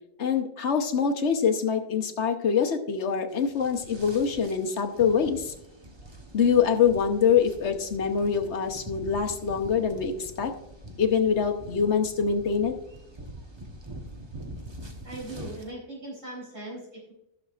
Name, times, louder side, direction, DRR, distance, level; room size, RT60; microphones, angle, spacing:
voice 1, 0.2-5.5 6.3-10.5 11.0-12.8, left 6 dB, 65° left, 5 dB, 1.2 m, -24 dB
sound 1, 3.3-15.7, right 1 dB, 25° right, 1.0 m, -44 dB
voice 2, 15.0-17.1, right 2 dB, 85° right, -5 dB, 4.3 m, -39 dB
14.5 x 6.6 x 2.4 m, 0.84 s
omnidirectional pair, 1.3 m